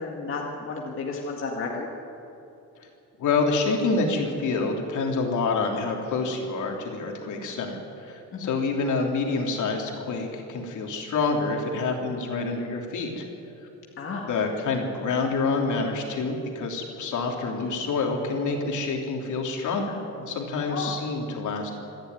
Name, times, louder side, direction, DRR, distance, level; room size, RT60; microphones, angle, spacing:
voice 1, 0.0-1.9 8.3-8.6 14.0-14.3 20.7-21.0, left 4 dB, 40° left, -2 dB, 2.1 m, -32 dB
voice 2, 3.2-13.3 14.3-21.7, left 3 dB, 70° left, 1 dB, 3.3 m, -27 dB
26.5 x 11.5 x 9.5 m, 2.8 s
cardioid pair, 170°, 31 cm